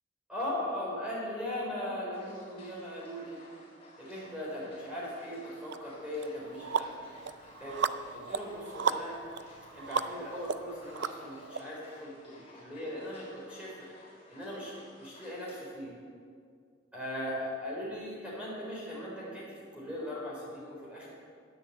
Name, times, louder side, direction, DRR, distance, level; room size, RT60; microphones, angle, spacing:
voice 1, 0.3-3.4 4.0-6.9 7.6-7.8 8.1-9.2 9.7-13.9 14.3-14.7 15.0-15.9 16.9-21.1, left 1 dB, 5° right, -6 dB, 3.9 m, -39 dB
sound 1, 2.1-15.5, left 2 dB, 30° left, 3.9 m, -56 dB
sound 2, 5.7-5.8 6.2-11.6, right 6 dB, 65° right, 0.5 m, -35 dB
10.5 x 10.0 x 8.0 m, 2.2 s
head